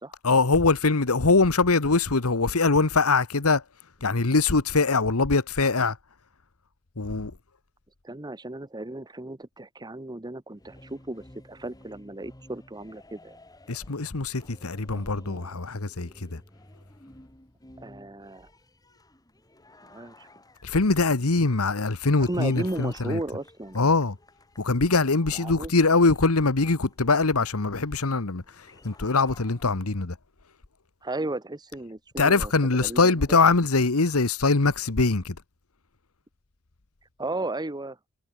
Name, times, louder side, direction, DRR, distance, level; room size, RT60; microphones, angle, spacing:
voice 1, 0.2-3.6 4.0-6.0 7.0-7.3 13.7-16.4 20.6-23.2 23.7-24.2 24.6-28.4 28.8-30.2 32.2-35.4, left 3 dB, 85° left, 1.3 m, -22 dB
voice 2, 8.0-13.4 14.9-15.6 17.8-18.5 19.8-20.3 22.2-23.8 25.3-25.7 31.0-33.4 37.2-38.0, right 2 dB, 20° right, 1.1 m, -35 dB
sound 1, 10.5-30.1, left 1 dB, 15° left, 3.4 m, -54 dB
head